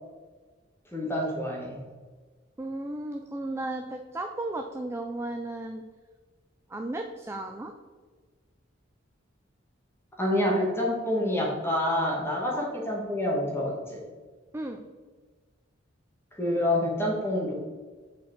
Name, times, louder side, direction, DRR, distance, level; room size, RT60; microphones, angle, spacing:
voice 1, 0.9-1.8 10.2-14.0 16.4-17.5, left 1 dB, 15° left, -2 dB, 1.5 m, -27 dB
voice 2, 2.6-5.8 6.7-7.7 14.5-14.8, right 2 dB, 15° right, 4 dB, 0.3 m, -34 dB
7.4 x 4.4 x 4.3 m, 1.4 s
head